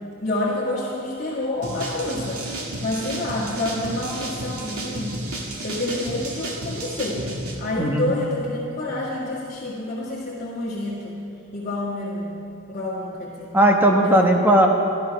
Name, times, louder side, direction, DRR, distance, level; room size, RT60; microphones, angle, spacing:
voice 1, 0.2-2.4 2.8-7.3 7.6-11.2 11.5-12.3 12.7-13.5 14.0-14.2, left 1 dB, 35° left, -8 dB, 1.8 m, -28 dB
sound 1, 1.6-7.5, right 1 dB, 85° right, 2.0 m, -32 dB
voice 2, 7.8-8.1 13.5-14.7, right 1 dB, 10° right, 2 dB, 1.1 m, -17 dB
13.0 x 12.5 x 5.9 m, 2.7 s
head